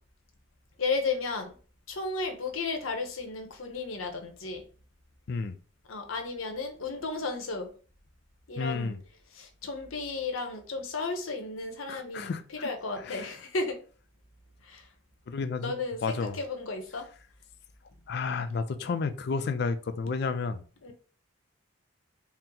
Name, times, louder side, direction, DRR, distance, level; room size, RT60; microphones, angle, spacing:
voice 1, 0.8-1.5 1.9-4.6 5.9-7.7 8.5-9.0 9.3-12.3 12.6-13.8 14.6-14.9 15.6-17.1 20.8-20.9, left 3 dB, 80° left, 0.8 m, -33 dB
voice 2, 5.3-5.6 8.6-9.0 11.9-12.7 13.0-13.3 15.3-15.7 16.0-16.4 18.1-20.9, left 4 dB, 50° left, 0.4 m, -32 dB
4.2 x 2.0 x 3.8 m
head